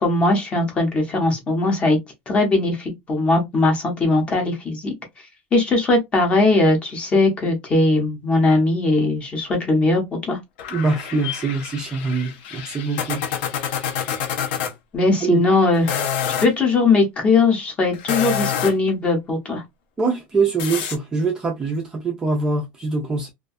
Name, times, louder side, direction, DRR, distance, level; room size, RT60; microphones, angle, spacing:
voice 1, 0.0-2.0 2.3-4.9 5.5-10.4 14.9-15.9 16.4-19.6, left 2 dB, 20° left, 0.7 m, -19 dB
sound 1, 10.6-14.7 15.7-16.5 17.9-18.9 20.6-21.0, left 8 dB, 70° left, 0.6 m, -27 dB
voice 2, 10.7-13.2 15.2-15.4 20.0-23.3, right 4 dB, 10° right, 0.4 m, -23 dB
2.3 x 2.2 x 2.5 m
cardioid pair, 175°, 6 cm